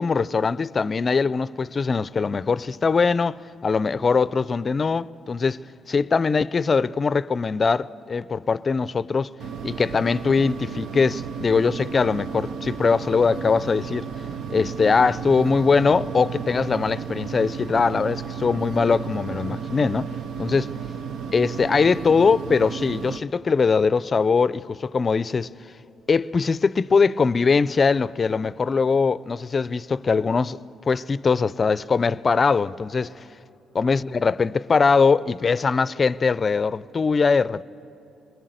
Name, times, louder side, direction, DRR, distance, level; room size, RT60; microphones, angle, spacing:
voice 1, 0.0-5.6 5.9-9.3 9.6-14.1 14.5-20.1 20.4-20.7 21.3-25.5 26.1-30.6 30.9-33.2 33.8-37.6, left 5 dB, 35° left, 0.5 m, -21 dB
sound 1, 9.4-23.2, right 6 dB, 80° right, 0.9 m, -33 dB
27.5 x 21.5 x 8.0 m
cardioid pair, 90°, 0 cm